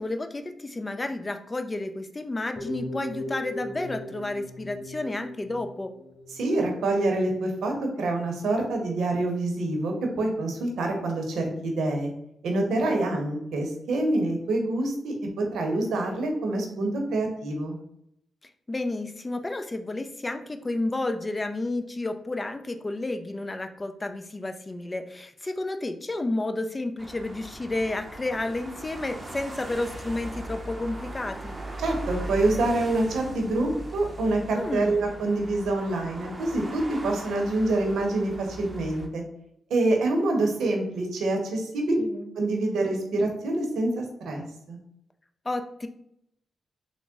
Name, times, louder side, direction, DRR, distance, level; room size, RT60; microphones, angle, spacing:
voice 1, 0.0-5.9 12.7-13.2 18.7-31.5 34.6-35.0 42.0-42.3 45.5-45.9, left 2 dB, 30° left, 7 dB, 0.4 m, -31 dB
sound 1, 2.6-7.9 8.2-8.5, equal, ahead, 1.4 m, -39 dB
voice 2, 6.3-12.1 12.4-17.8 31.8-39.2 39.7-42.0 42.3-44.8, right 2 dB, 80° right, 2 dB, 0.7 m, -26 dB
sound 2, 27.0-39.1, right 1 dB, 30° right, 0.6 m, -39 dB
3.6 x 2.0 x 3.5 m, 0.77 s
supercardioid pair, 55°, 0 cm